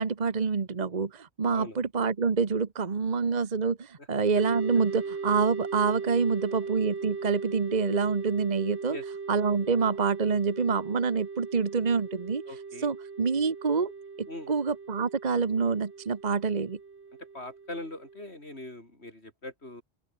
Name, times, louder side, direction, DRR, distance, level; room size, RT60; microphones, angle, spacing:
voice 1, 0.0-9.0 9.3-12.4 12.8-13.9 14.2-16.8, right 5 dB, 40° right, 1.2 m, -27 dB
sound 1, 4.3-18.2, right 4 dB, 85° right, 2.1 m, -39 dB
voice 2, 12.5-12.9 14.3-14.5 17.2-19.8, left 1 dB, 80° left, 6.6 m, -41 dB
open air
omnidirectional pair, 1.1 m